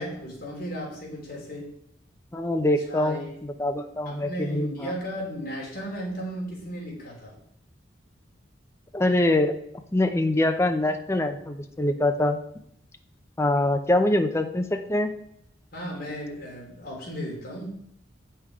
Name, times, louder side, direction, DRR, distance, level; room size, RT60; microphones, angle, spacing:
voice 1, 0.0-1.7 2.9-3.3 4.0-7.3 15.7-17.8, equal, 55° left, -3 dB, 3.1 m, -35 dB
voice 2, 2.3-3.2 3.6-4.9 8.9-9.5 9.9-12.4 13.4-15.1, left 1 dB, 15° left, 6 dB, 0.6 m, -24 dB
8.2 x 5.7 x 4.7 m, 0.71 s
head